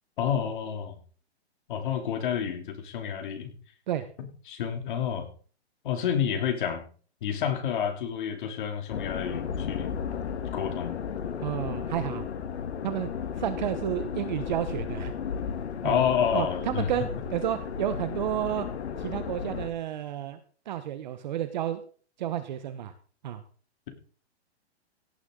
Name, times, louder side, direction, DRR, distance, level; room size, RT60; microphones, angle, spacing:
voice 1, 0.2-1.0 1.7-3.5 4.2-5.3 5.8-6.9 7.2-9.9 10.5-11.0 15.8-16.9, left 8 dB, 45° left, 4 dB, 2.9 m, -29 dB
sound 1, 8.9-19.7, left 7 dB, 75° left, 1.6 m, -34 dB
voice 2, 11.4-12.2 12.8-13.1 13.4-15.1 15.8-16.0 16.3-18.7 19.0-20.4 20.7-21.8 22.2-22.9 23.2-23.4, right 11 dB, 45° right, 10 dB, 1.0 m, -31 dB
17.0 x 9.6 x 3.8 m, 0.42 s
hypercardioid pair, 165°, 33 cm